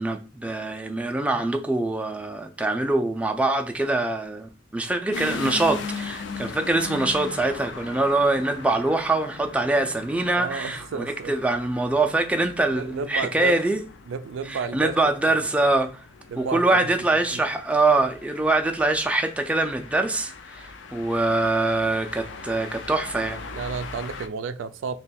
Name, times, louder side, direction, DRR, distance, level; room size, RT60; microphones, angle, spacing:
voice 1, 0.0-13.8 14.5-15.9 16.4-23.4, right 2 dB, 5° right, 0.3 m, -24 dB
sound 1, 5.1-24.3, left 4 dB, 70° left, 0.5 m, -39 dB
voice 2, 10.4-11.3 12.7-13.6 14.1-14.9 15.2-15.4 16.3-16.9 17.3-17.4 23.5-25.0, right 5 dB, 90° right, 0.3 m, -31 dB
3.0 x 2.3 x 4.1 m
head